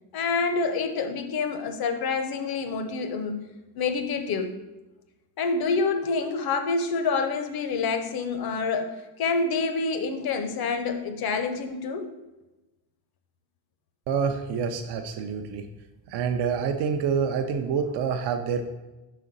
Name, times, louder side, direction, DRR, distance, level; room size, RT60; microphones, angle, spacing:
voice 1, 0.1-3.4 3.8-4.5 5.4-8.9 9.2-12.1, left 4 dB, 55° left, 7 dB, 0.7 m, -27 dB
voice 2, 14.1-15.6 16.1-18.7, right 6 dB, 65° right, 6 dB, 0.5 m, -27 dB
5.7 x 4.2 x 4.0 m, 1.1 s
cardioid pair, 160°, 45 cm